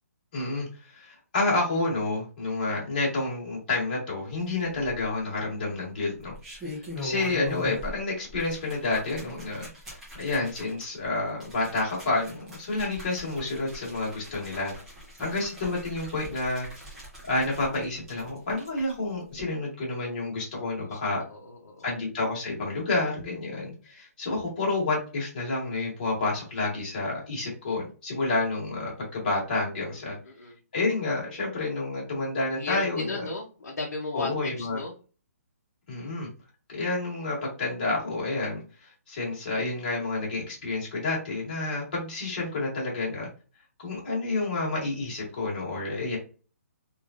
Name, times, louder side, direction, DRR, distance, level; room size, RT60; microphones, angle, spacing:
voice 1, 0.3-14.7 15.2-16.7 17.3-21.2 21.8-30.2 30.7-33.2 34.1-34.8 35.9-36.3 36.7-43.3 43.8-46.2, left 2 dB, 35° left, -4 dB, 1.4 m, -29 dB
sound 1, 4.7-5.3 6.2-8.0 8.3-18.9 19.3-19.4, equal, 5° right, 0.5 m, -42 dB
voice 2, 20.8-21.9 30.0-30.6 32.6-34.3 34.6-34.9, left 3 dB, 85° left, -1 dB, 0.7 m, -36 dB
3.2 x 2.5 x 2.4 m, 0.36 s
hypercardioid pair, 180°, 8 cm